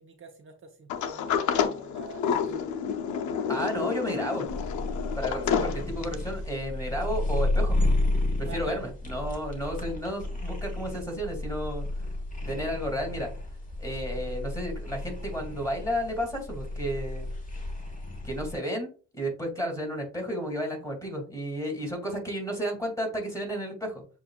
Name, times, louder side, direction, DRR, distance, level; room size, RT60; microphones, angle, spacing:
voice 1, 0.0-2.8 8.4-8.9, right 4 dB, 45° right, 2 dB, 0.9 m, -46 dB
Sliding door, 0.9-6.3, left 7 dB, 75° left, 0.6 m, -29 dB
voice 2, 3.5-4.5 5.2-7.8 8.4-11.8 12.5-13.3 13.8-17.3 18.2-24.0, equal, 10° left, 0 dB, 2.4 m, -32 dB
sound 1, 4.5-18.5, left 2 dB, 25° left, 1.3 m, -32 dB
7.1 x 2.6 x 2.4 m, 0.36 s
cardioid pair, 90°, 30 cm